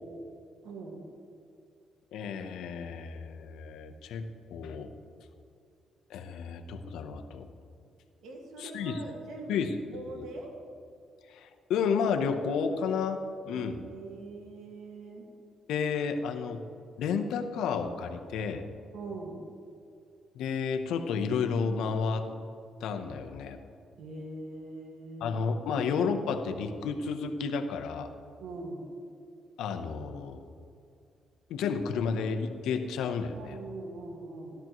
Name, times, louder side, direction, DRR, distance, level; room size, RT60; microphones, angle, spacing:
voice 1, 0.6-1.0 8.2-10.5 13.5-15.3 18.9-19.4 24.0-25.4 28.4-28.9 33.3-34.5, right 2 dB, 80° right, 0 dB, 1.8 m, -42 dB
voice 2, 2.1-4.3 4.5-4.9 6.1-7.5 8.6-9.0 9.5-9.7 10.1-10.2 11.3-13.2 13.4-13.8 15.7-16.6 17.0-18.6 20.3-22.3 22.8-23.6 25.2-28.1 29.6-30.4 31.5-33.6, left 6 dB, 85° left, 6 dB, 0.8 m, -31 dB
13.0 x 12.5 x 3.0 m, 2.5 s
cardioid pair, 90°, 0 cm